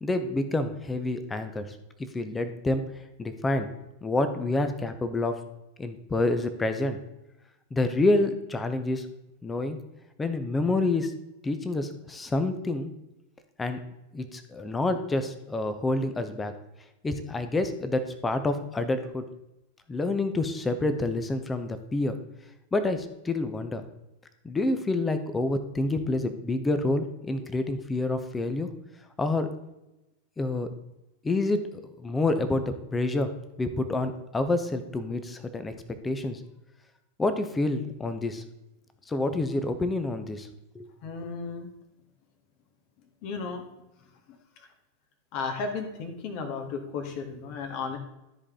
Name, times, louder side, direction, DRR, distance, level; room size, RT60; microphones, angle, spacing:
voice 1, 0.0-2.8 3.2-3.7 4.0-5.4 5.8-7.0 7.7-9.1 9.4-9.8 10.2-11.1 11.4-12.9 13.6-13.8 14.1-16.5 17.0-19.3 19.9-22.1 22.7-23.8 24.4-28.7 29.2-29.5 30.4-30.7 31.2-33.3 33.6-35.7 36.0-36.4 37.2-38.4 39.1-40.5 40.7-40.9, left 2 dB, 15° left, 9 dB, 0.9 m, -28 dB
voice 2, 41.0-41.7 43.2-43.6 44.6-44.7 45.3-48.0, left 4 dB, 45° left, 5 dB, 1.7 m, -34 dB
13.0 x 4.9 x 3.7 m, 0.93 s
figure-of-eight pair, 90°, 0 cm